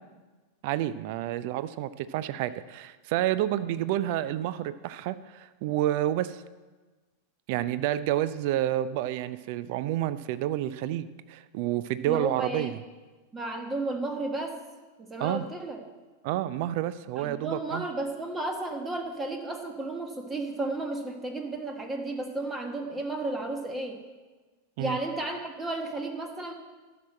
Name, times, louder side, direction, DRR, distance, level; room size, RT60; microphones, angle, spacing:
voice 1, 0.6-6.4 7.5-12.8 15.2-15.4 16.2-17.8 24.8-25.0, right 13 dB, 50° right, 14 dB, 0.4 m, -29 dB
voice 2, 12.0-12.7 13.3-14.6 15.0-15.8 17.1-24.0 24.8-26.5, right 2 dB, 15° right, 4 dB, 1.5 m, -33 dB
11.5 x 6.1 x 7.5 m, 1.3 s
figure-of-eight pair, 90°, 0 cm